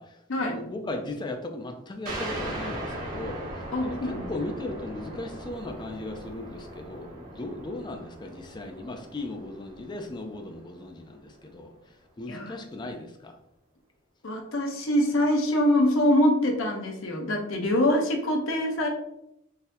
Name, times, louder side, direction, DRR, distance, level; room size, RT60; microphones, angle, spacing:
voice 1, 0.0-11.7 12.2-13.3, left 2 dB, 20° left, 4 dB, 0.4 m, -37 dB
sound 1, 2.1-11.3, right 1 dB, 45° right, 1.2 m, -39 dB
voice 2, 3.7-4.3 12.3-12.6 14.2-18.9, left 1 dB, 70° left, 2 dB, 0.7 m, -24 dB
3.9 x 2.7 x 2.6 m, 0.82 s
head